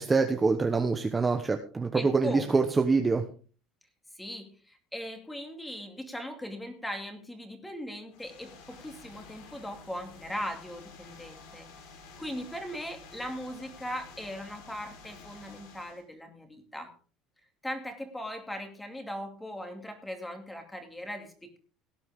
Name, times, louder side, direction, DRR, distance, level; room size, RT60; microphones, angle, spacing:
voice 1, 0.0-3.2, right 4 dB, 15° right, 5 dB, 1.1 m, -25 dB
voice 2, 1.9-2.6 4.1-11.7 12.2-16.9 17.6-21.6, equal, 5° left, 5 dB, 2.5 m, -39 dB
sound 1, 8.1-16.0, left 4 dB, 80° left, 4.9 m, -51 dB
17.5 x 10.0 x 3.7 m, 0.38 s
cardioid pair, 150°, 0 cm